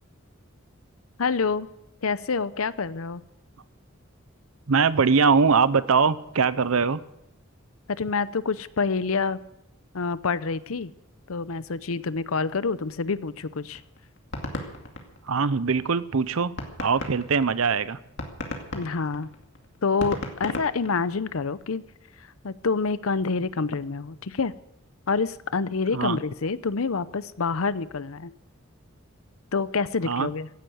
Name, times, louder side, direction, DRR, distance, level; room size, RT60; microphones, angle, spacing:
voice 1, 1.2-1.7 2.0-3.2 8.0-9.4 9.9-10.9 11.3-13.8 18.7-19.3 19.8-21.8 22.4-24.5 25.1-28.3 29.5-30.5, left 4 dB, 85° left, 16 dB, 0.7 m, -27 dB
voice 2, 4.7-7.0 15.3-16.5 16.8-18.0 25.9-26.2 30.0-30.3, right 5 dB, 85° right, 16 dB, 0.7 m, -22 dB
sound 1, 13.7-15.8 16.2-16.3 16.6-21.5, left 1 dB, 60° left, 2.3 m, -35 dB
16.5 x 10.5 x 8.0 m, 0.82 s
head